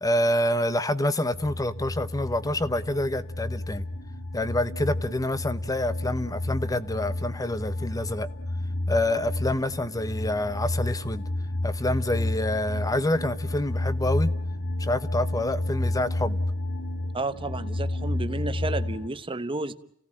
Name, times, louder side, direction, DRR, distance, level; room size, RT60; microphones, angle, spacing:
voice 1, 0.0-3.9 4.3-8.3 8.9-11.2 11.6-14.3 14.8-16.4, left 1 dB, 15° left, 0.9 m, -27 dB
sound 1, 1.3-19.1, left 1 dB, 80° left, 2.2 m, -31 dB
voice 2, 17.1-19.7, right 2 dB, 25° right, 1.0 m, -31 dB
30.0 x 17.0 x 8.7 m
head